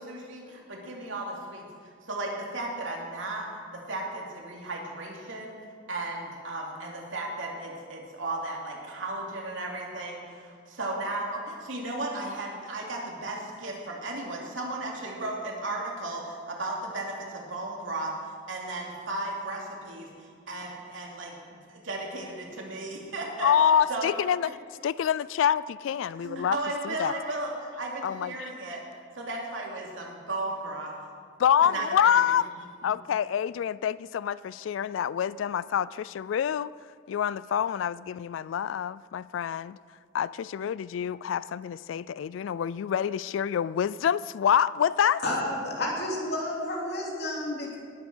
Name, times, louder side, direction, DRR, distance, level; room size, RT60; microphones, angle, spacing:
voice 1, 0.0-1.7 2.0-3.5 3.7-5.5 5.9-18.1 18.5-21.3 21.7-23.5 23.9-24.1 26.2-28.8 29.1-30.9 31.7-31.9 32.1-32.2 32.8-32.9, right 2 dB, 85° right, -1 dB, 3.0 m, -35 dB
voice 2, 23.4-24.5 24.8-26.6 26.8-27.1 28.0-28.5 31.4-32.5 32.8-36.7 37.1-39.8 40.1-45.2, left 8 dB, 80° left, 19 dB, 0.3 m, -26 dB
voice 3, 45.2-47.8, left 1 dB, 60° left, -2 dB, 3.1 m, -31 dB
19.0 x 8.4 x 6.3 m, 2.1 s
head